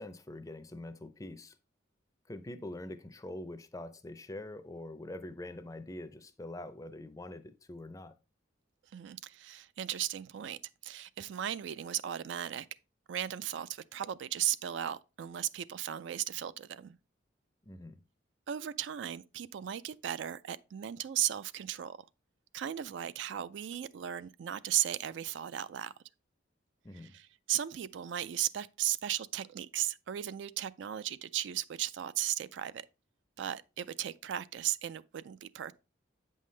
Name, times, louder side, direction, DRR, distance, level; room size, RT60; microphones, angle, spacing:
voice 1, 0.0-1.5 2.3-8.1 17.7-18.0 26.8-27.1, left 1 dB, 15° left, 0.5 m, -44 dB
voice 2, 8.9-12.7 13.1-17.0 18.5-22.0 22.5-25.9 26.9-32.8 33.4-35.7, right 11 dB, 65° right, 0.3 m, -36 dB
8.3 x 5.5 x 3.2 m
head